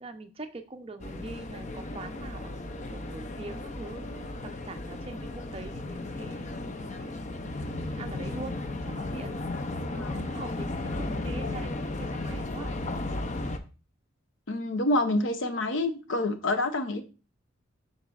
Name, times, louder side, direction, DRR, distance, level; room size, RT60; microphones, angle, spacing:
voice 1, 0.0-4.3 4.7-7.1 7.4-8.6 8.9-9.4 9.9-12.7, right 2 dB, 30° right, 0.5 m, -43 dB
sound 1, 1.0-13.6, left 2 dB, 35° left, 0.5 m, -35 dB
voice 2, 14.5-17.0, left 2 dB, 65° left, 0.8 m, -27 dB
11.0 x 4.1 x 2.3 m
head